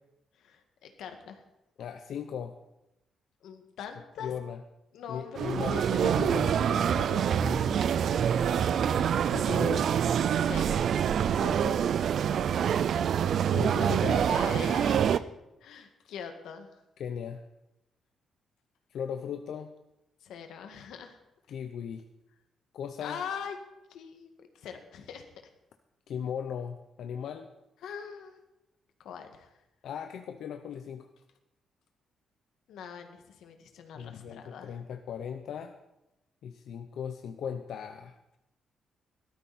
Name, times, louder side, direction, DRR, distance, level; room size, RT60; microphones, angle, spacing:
voice 1, 0.4-1.4 3.4-4.3 4.9-6.1 8.4-8.9 10.4-10.8 13.8-13.9 14.3-15.3 15.6-16.7 20.2-21.2 23.0-23.6 23.9-25.3 27.8-28.4 29.0-29.5 32.7-34.7, left 7 dB, 85° left, 6 dB, 1.8 m, -42 dB
voice 2, 1.8-2.5 4.2-4.6 5.1-7.8 9.3-9.9 11.4-11.9 13.5-14.3 17.0-17.4 18.9-19.7 21.5-22.0 22.7-23.2 26.1-27.5 29.8-31.1 34.0-35.8 36.4-38.2, left 8 dB, 60° left, 6 dB, 0.7 m, -37 dB
sound 1, 5.4-15.2, right 8 dB, 50° right, 0.4 m, -26 dB
16.5 x 13.0 x 4.2 m, 0.92 s
cardioid pair, 180°, 0 cm